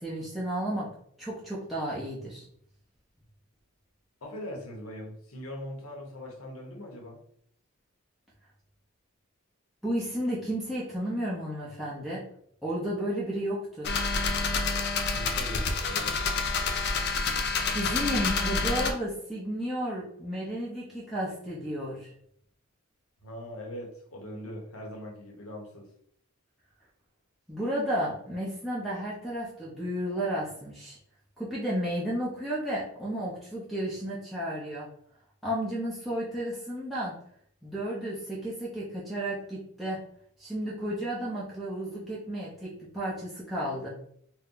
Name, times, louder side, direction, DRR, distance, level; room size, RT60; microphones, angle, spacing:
voice 1, 0.0-0.9 1.2-2.4 9.8-12.2 12.6-13.9 17.7-22.1 27.5-31.0 31.4-34.9 35.4-37.1 37.6-40.0 40.4-43.9, equal, ahead, -8 dB, 0.6 m, -32 dB
voice 2, 4.2-7.2 15.0-16.2 23.2-25.9, left 1 dB, 80° left, 0 dB, 0.9 m, -41 dB
sound 1, 13.8-18.9, left 4 dB, 50° left, 0.4 m, -28 dB
2.6 x 2.2 x 3.7 m, 0.66 s
head